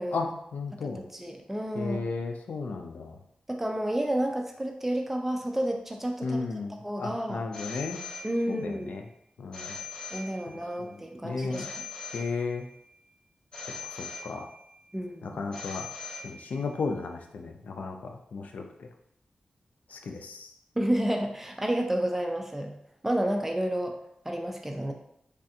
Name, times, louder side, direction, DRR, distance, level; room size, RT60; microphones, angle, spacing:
voice 1, 0.0-0.3 1.0-2.0 3.5-6.4 6.8-7.4 8.2-9.0 10.1-11.7 14.9-15.4 20.8-22.7 23.0-24.0 24.3-24.9, right 1 dB, 10° right, 3 dB, 0.4 m, -30 dB
voice 2, 0.5-1.0 1.8-3.2 6.2-8.0 8.5-9.0 9.4-9.8 10.8-10.9 11.2-11.7 12.1-12.7 14.2-14.5 15.2-15.9 16.2-18.9 19.9-20.5, left 4 dB, 80° left, 4 dB, 0.4 m, -34 dB
Telephone, 7.5-8.8 9.5-10.8 11.5-12.8 13.5-14.8 15.5-16.8, left 4 dB, 25° left, 0.8 m, -41 dB
3.3 x 2.4 x 2.7 m, 0.75 s
wide cardioid pair, 100°, 3 cm